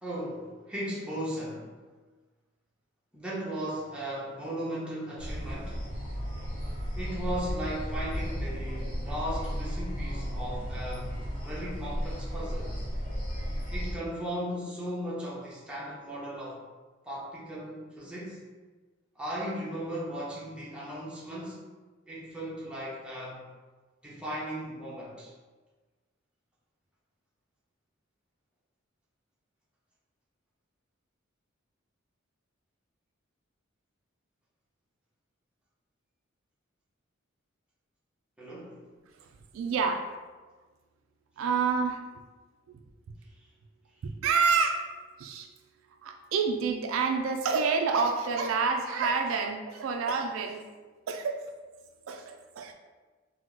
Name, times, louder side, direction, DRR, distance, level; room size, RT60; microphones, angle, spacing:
voice 1, 0.0-1.7 3.1-5.8 6.9-12.7 13.7-16.6 17.1-18.4 19.2-21.6 22.1-23.4 24.0-25.3 38.4-38.8, equal, 5° right, -7 dB, 0.7 m, -37 dB
sound 1, 5.2-13.9, equal, 40° left, 1.2 m, -34 dB
voice 2, 39.5-40.0 41.4-42.0 44.2-44.9 45.2-45.5 46.0-50.6 51.1-51.4 52.1-52.7, right 5 dB, 75° right, 5 dB, 0.3 m, -28 dB
2.9 x 2.1 x 3.6 m, 1.3 s
head